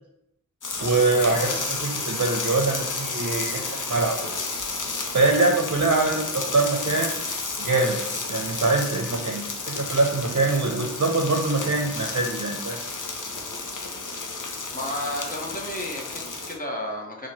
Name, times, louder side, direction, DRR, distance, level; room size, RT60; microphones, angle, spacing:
sound 1, 0.6-16.6, left 3 dB, 90° left, 0.6 m, -32 dB
voice 1, 0.8-4.2 5.1-7.1 7.6-8.0 8.3-12.8, right 3 dB, 60° right, 1 dB, 0.6 m, -23 dB
voice 2, 14.7-17.3, left 1 dB, 30° left, -2 dB, 1.0 m, -32 dB
4.5 x 2.2 x 4.0 m, 0.84 s
wide cardioid pair, 50°, 30 cm